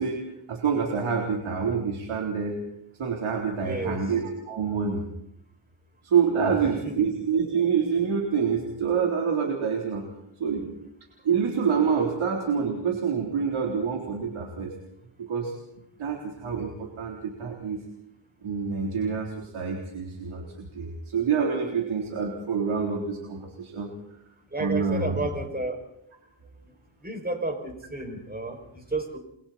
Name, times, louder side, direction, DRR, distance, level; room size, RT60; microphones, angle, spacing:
voice 1, 0.0-2.6 3.0-5.0 6.0-10.0 10.4-10.8 11.2-14.7 15.2-15.6 16.0-17.8 18.4-23.9 24.6-25.2, right 6 dB, 85° right, 0 dB, 3.8 m, -27 dB
voice 2, 3.6-4.0 6.4-6.5 6.8-7.1 24.5-25.8 27.0-29.2, right 2 dB, 20° right, 3 dB, 6.5 m, -32 dB
29.5 x 23.0 x 4.4 m, 0.78 s
cardioid pair, 80°, 48 cm